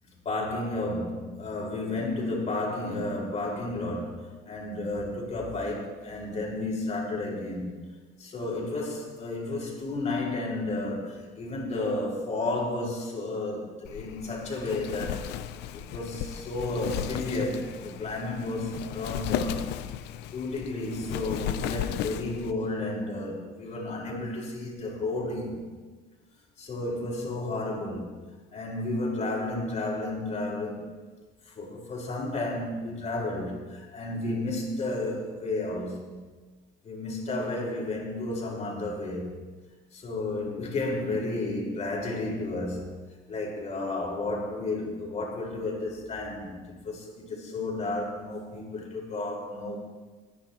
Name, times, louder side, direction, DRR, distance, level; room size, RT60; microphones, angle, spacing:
voice 1, 0.2-7.9 8.2-15.2 15.7-19.7 20.3-25.6 26.6-28.1 28.5-30.8 31.5-36.2 36.8-39.3 39.9-43.0 43.3-49.8, left 2 dB, 40° left, -2 dB, 4.6 m, -32 dB
Wind, 13.8-22.5, left 11 dB, 90° left, 0.6 m, -35 dB
26.5 x 10.5 x 3.0 m, 1.3 s
cardioid pair, 110°, 17 cm